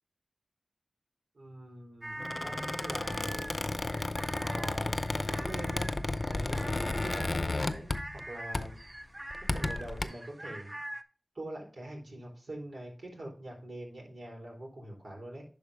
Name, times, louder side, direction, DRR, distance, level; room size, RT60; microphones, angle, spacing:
voice 1, 1.3-3.7 4.3-5.9 6.3-8.8 9.5-10.8 11.3-15.4, right 1 dB, 75° right, -1 dB, 3.5 m, -44 dB
sound 1, 2.0-11.0, right 1 dB, 25° right, 0.7 m, -44 dB
Squeak, 2.2-8.3 8.5-8.8 9.3-10.0, left 2 dB, 50° left, 0.6 m, -33 dB
11.0 x 4.3 x 3.5 m, 0.41 s
cardioid pair, 40°, 0 cm